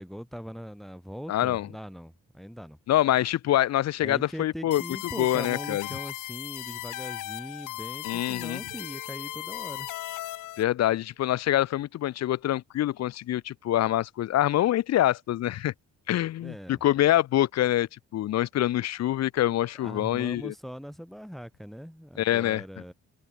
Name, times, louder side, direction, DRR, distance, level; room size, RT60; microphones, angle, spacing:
voice 1, 0.0-2.8 4.0-9.9 16.4-16.8 19.8-22.9, equal, ahead, 3.4 m, -41 dB
voice 2, 1.3-1.7 2.9-4.8 5.2-5.9 8.0-8.6 10.6-15.7 16.1-20.5 22.2-22.6, left 13 dB, 60° left, 0.6 m, -25 dB
sound 1, 4.7-10.6, left 15 dB, 85° left, 1.9 m, -37 dB
Keyboard (musical), 8.7-11.9, right 16 dB, 90° right, 3.1 m, -56 dB
cardioid pair, 90°, 30 cm